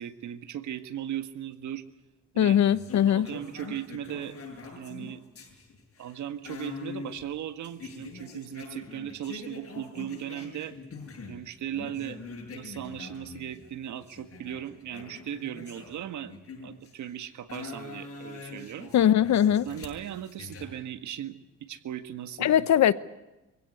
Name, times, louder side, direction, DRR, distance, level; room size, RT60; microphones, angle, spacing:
voice 1, 0.0-1.8 2.3-2.6 3.1-4.4 4.8-5.2 6.0-10.8 11.3-12.2 12.5-16.3 16.6-18.9 19.6-22.7, right 10 dB, 75° right, 1.7 m, -37 dB
voice 2, 2.4-3.3 18.9-19.6 22.4-22.9, left 10 dB, 65° left, 1.0 m, -21 dB
sound 1, 2.7-11.4 11.7-17.0 17.5-20.7, left 4 dB, 50° left, 8.0 m, -44 dB
24.5 x 16.5 x 9.5 m
cardioid pair, 90°, 30 cm